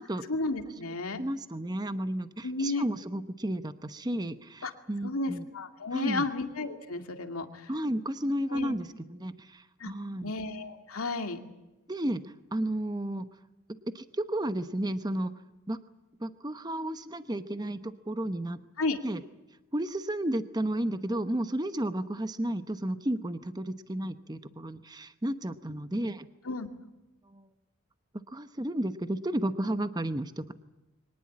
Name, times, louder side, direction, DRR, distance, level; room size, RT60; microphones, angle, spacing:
voice 1, 0.3-1.2 2.4-2.8 4.6-4.7 5.0-7.7 8.5-8.8 9.8-9.9 10.2-11.4 18.8-19.0 26.4-26.7, left 3 dB, 80° left, 6 dB, 2.3 m, -32 dB
voice 2, 1.2-5.5 5.9-6.3 7.7-10.3 11.9-13.3 13.9-15.3 15.7-15.8 16.2-18.6 19.0-19.2 19.7-26.3 27.3-27.5 28.3-30.5, right 1 dB, 20° right, 11 dB, 0.9 m, -32 dB
23.5 x 19.5 x 8.6 m, 1.0 s
head